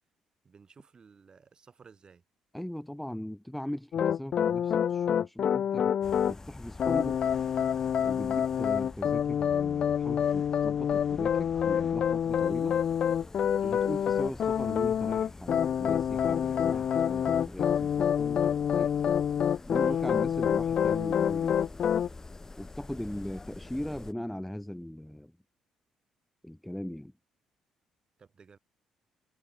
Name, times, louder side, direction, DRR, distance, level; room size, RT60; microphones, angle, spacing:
voice 1, 0.4-2.2 13.6-13.8 19.8-20.0 28.2-28.6, right 5 dB, 40° right, 6.7 m, -56 dB
voice 2, 2.5-5.9 6.3-7.2 8.0-12.7 13.6-18.9 19.7-21.6 22.6-25.3 26.4-27.1, left 1 dB, 5° left, 0.8 m, -39 dB
sound 1, 3.9-6.3 6.8-22.1, left 8 dB, 50° left, 0.3 m, -27 dB
sound 2, 6.0-24.1, left 3 dB, 25° left, 5.0 m, -47 dB
figure-of-eight pair, 45°, 2 cm